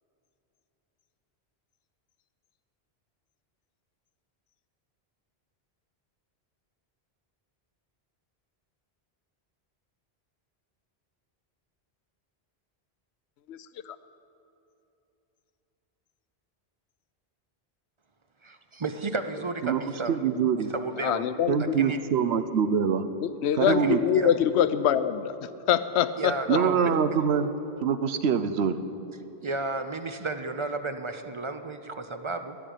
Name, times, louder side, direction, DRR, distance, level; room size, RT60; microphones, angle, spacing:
voice 1, 18.4-20.2 20.6-21.3 21.6-22.0 23.6-24.3 26.2-26.9 29.4-32.6, right 3 dB, 35° right, 8 dB, 0.5 m, -33 dB
voice 2, 20.1-20.7 21.5-23.0 23.6-24.0 26.5-27.5 27.8-28.8, right 7 dB, 75° right, 11 dB, 0.9 m, -24 dB
voice 3, 21.0-21.8 23.2-26.6, left 9 dB, 90° left, 13 dB, 0.9 m, -25 dB
13.5 x 7.1 x 10.0 m, 3.0 s
omnidirectional pair, 1.1 m